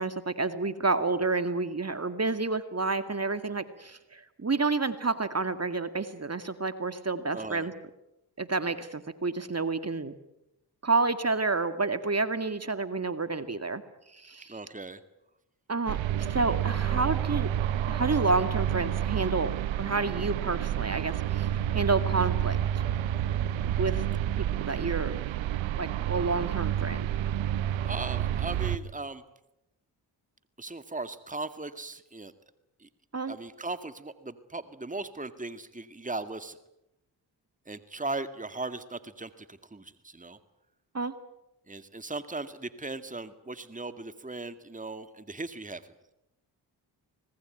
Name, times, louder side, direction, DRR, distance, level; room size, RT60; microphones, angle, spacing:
voice 1, 0.0-7.7 8.4-10.1 10.8-13.8 14.1-14.6 15.7-17.5 17.9-22.8 23.6-24.0 24.4-25.2 25.8-27.1 33.1-33.4 40.9-41.1, right 3 dB, 35° right, 11 dB, 2.1 m, -29 dB
voice 2, 7.3-7.7 14.5-15.0 27.8-29.2 30.6-32.3 32.8-32.9 33.3-36.6 37.7-40.4 41.7-46.1, right 3 dB, 15° right, 11 dB, 2.1 m, -38 dB
sound 1, 15.9-28.8, right 11 dB, 90° right, 1.0 m, -29 dB
25.5 x 20.0 x 9.2 m, 0.86 s
supercardioid pair, 45°, 45 cm